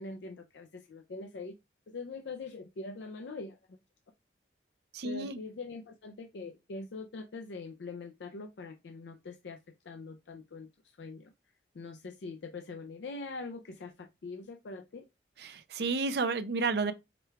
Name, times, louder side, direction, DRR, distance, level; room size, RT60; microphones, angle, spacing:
voice 1, 0.0-1.5 1.9-3.8 5.0-9.6 9.8-11.3 11.7-15.1, left 3 dB, 85° left, 0.5 m, -43 dB
voice 2, 4.9-5.4 15.4-16.9, right 4 dB, 65° right, 0.5 m, -31 dB
4.9 x 2.3 x 4.4 m
head